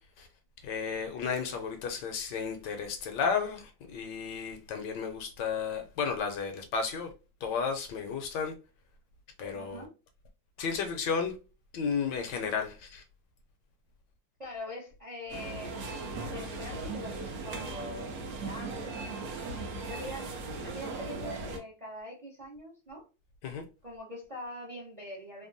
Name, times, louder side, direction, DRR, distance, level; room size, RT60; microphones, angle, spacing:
voice 1, 0.6-7.1 7.4-8.5 9.4-9.8 10.6-11.4 11.7-13.0 23.4-23.6, left 6 dB, 75° left, 1.1 m, -33 dB
voice 2, 9.5-9.9 14.4-19.3 19.9-23.0 23.8-25.5, left 1 dB, 45° right, 0.5 m, -44 dB
sound 1, 15.3-21.6, right 3 dB, 65° right, 1.0 m, -38 dB
3.4 x 2.1 x 2.5 m
omnidirectional pair, 2.0 m